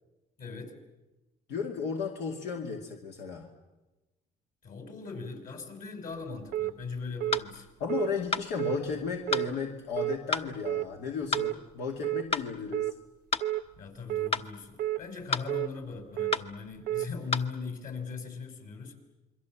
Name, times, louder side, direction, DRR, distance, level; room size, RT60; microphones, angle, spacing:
voice 1, 0.4-0.7 4.6-7.7 13.8-18.9, left 4 dB, 55° left, 6 dB, 5.5 m, -39 dB
voice 2, 1.5-3.5 7.8-12.9, left 5 dB, 85° left, 1 dB, 2.4 m, -34 dB
sound 1, 6.5-6.7 7.2-7.4 7.9-8.1 8.6-8.8 9.3-9.5 10.0-10.2 10.7-10.9 11.3-11.6 12.0-12.2 12.7-12.9 13.4-13.6 14.1-14.3 14.8-15.0 15.5-15.7 16.2-16.4 16.9-17.1, right 14 dB, 65° right, 0.8 m, -30 dB
sound 2, 7.3-7.5 8.3-8.5 9.3-9.5 10.3-10.5 11.3-11.5 12.3-12.5 13.3-13.5 14.3-14.5 15.3-15.5 16.3-16.5 17.3-17.5, left 3 dB, 35° left, 1.1 m, -30 dB
28.0 x 23.0 x 7.4 m, 1.1 s
cardioid pair, 110°, 17 cm